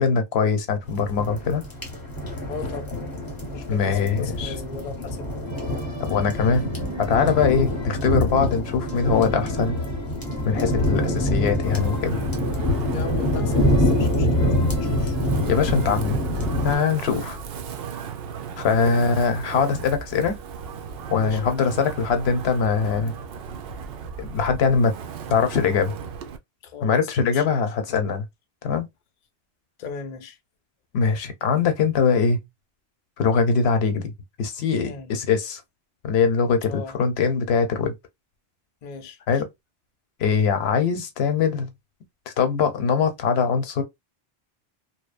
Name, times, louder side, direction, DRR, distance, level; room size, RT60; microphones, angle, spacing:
voice 1, 0.0-1.6 3.7-4.5 6.0-6.7 7.1-9.8 10.4-12.2 15.5-16.2 16.6-17.4 18.6-20.4 21.1-23.1 24.2-24.9 25.3-25.9 26.8-28.2 28.6-28.9 30.9-32.4 33.2-34.1 34.4-35.6 36.0-37.9 39.3-39.5 40.2-41.7 42.4-43.8, left 5 dB, 85° left, 0.9 m, -22 dB
sound 1, 0.9-16.8, left 1 dB, 25° left, 0.8 m, -25 dB
voice 2, 2.5-3.0 3.5-5.3 12.9-15.2 17.1-17.2 18.8-19.0 21.1-21.6 26.6-27.4 29.8-30.4 34.8-35.1 36.7-37.0 38.8-39.2, left 5 dB, 50° left, 0.6 m, -38 dB
sound 2, 5.4-16.0, right 2 dB, 25° right, 0.4 m, -42 dB
Wind, 11.6-26.4, right 6 dB, 70° right, 0.7 m, -36 dB
2.7 x 2.0 x 2.3 m
omnidirectional pair, 1.0 m